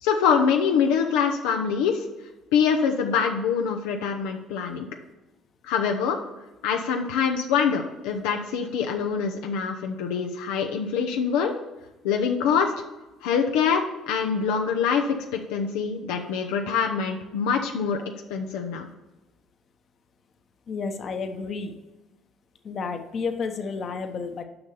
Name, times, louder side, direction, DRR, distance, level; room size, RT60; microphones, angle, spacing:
voice 1, 0.0-2.0 2.5-4.9 5.7-6.2 6.6-11.5 12.0-12.7 13.2-18.0 18.3-18.9, left 6 dB, 85° left, 3 dB, 0.7 m, -24 dB
voice 2, 20.7-21.7 22.6-24.4, left 5 dB, 50° left, 6 dB, 1.0 m, -31 dB
6.9 x 5.5 x 6.8 m, 1.1 s
supercardioid pair, 80°, 0 cm